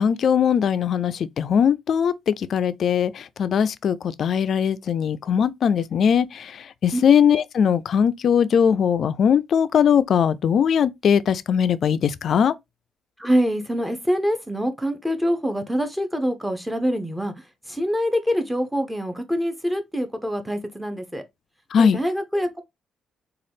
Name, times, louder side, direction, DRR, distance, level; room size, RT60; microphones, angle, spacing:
voice 1, 0.0-6.5 6.8-12.5 21.7-22.0, left 7 dB, 60° left, 0.3 m, -20 dB
voice 2, 13.2-17.3 17.7-21.2 21.8-22.6, equal, 5° right, 0.8 m, -25 dB
3.7 x 2.3 x 3.4 m
cardioid pair, 90°, 0 cm